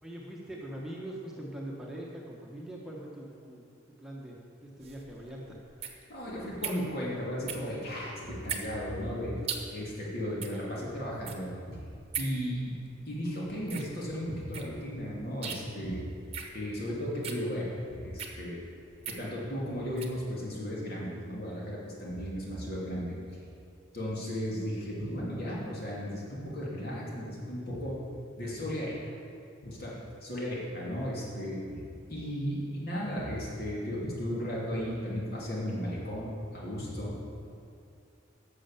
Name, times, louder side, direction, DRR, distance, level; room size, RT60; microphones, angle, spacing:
voice 1, 0.0-4.4 4.6-5.6, right 1 dB, 5° right, -4 dB, 1.2 m, -42 dB
sound 1, 4.8-20.2, right 7 dB, 35° right, 1.1 m, -42 dB
voice 2, 6.1-9.4 9.7-11.8 12.2-12.7 13.1-16.1 16.5-18.6 19.1-23.2 23.9-28.0 28.4-29.0 29.6-31.8 32.1-37.2, equal, 55° left, -4 dB, 2.8 m, -35 dB
11.5 x 6.7 x 7.3 m, 2.4 s
head